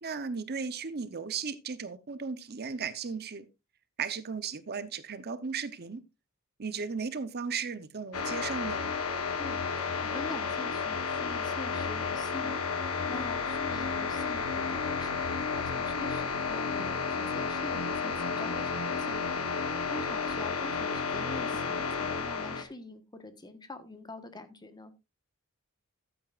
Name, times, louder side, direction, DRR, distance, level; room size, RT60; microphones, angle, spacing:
voice 1, 0.0-3.5 4.0-6.0 6.6-8.9, right 5 dB, 50° right, 0.8 m, -36 dB
sound 1, 8.1-22.6, left 5 dB, 80° left, 1.3 m, -32 dB
voice 2, 9.4-24.9, left 2 dB, 20° left, 1.3 m, -45 dB
13.5 x 9.0 x 2.5 m
head